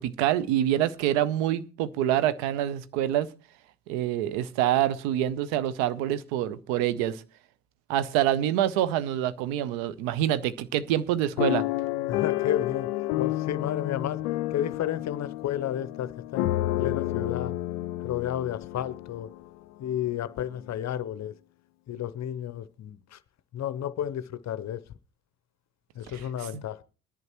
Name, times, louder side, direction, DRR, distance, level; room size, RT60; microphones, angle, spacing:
voice 1, 0.0-3.3 3.9-7.2 7.9-11.7 26.5-26.6, right 12 dB, 65° right, 0.8 m, -26 dB
sound 1, 11.4-19.5 20.1-20.2 20.4-20.7, left 16 dB, 80° left, 0.5 m, -30 dB
voice 2, 12.1-14.2 14.5-16.5 16.8-17.5 18.0-19.3 19.8-21.3 21.9-23.2 23.5-24.8 25.9-26.8, left 10 dB, 40° left, 0.7 m, -32 dB
21.5 x 10.5 x 3.0 m
hypercardioid pair, 55°, 45 cm